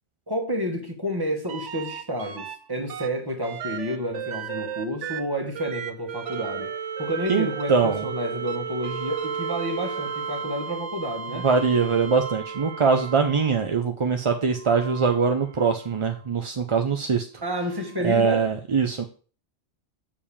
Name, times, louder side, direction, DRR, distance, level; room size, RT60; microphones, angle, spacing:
voice 1, 0.3-6.7 7.0-11.5 17.4-18.5, equal, 20° right, 1.6 m, -30 dB
sound 1, 1.5-2.6 2.9-13.7 14.5-16.1 17.8-17.9, right 7 dB, 70° right, 1.1 m, -34 dB
voice 2, 7.3-8.1 11.4-17.3 18.0-19.0, right 5 dB, 35° right, 0.5 m, -22 dB
6.9 x 4.9 x 7.1 m
omnidirectional pair, 1.2 m